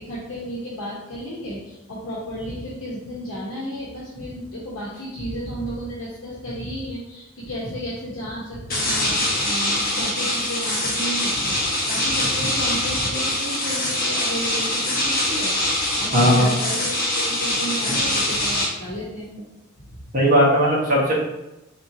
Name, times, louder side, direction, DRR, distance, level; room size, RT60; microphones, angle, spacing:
voice 1, 0.0-15.7 15.9-19.5 19.8-19.9, equal, 70° left, -7 dB, 1.0 m, -32 dB
sound 1, 8.7-18.7, left 1 dB, 45° left, 1.2 m, -23 dB
voice 2, 16.1-16.5 20.1-21.1, equal, 45° right, -6 dB, 1.5 m, -17 dB
4.4 x 3.4 x 2.8 m, 0.98 s
head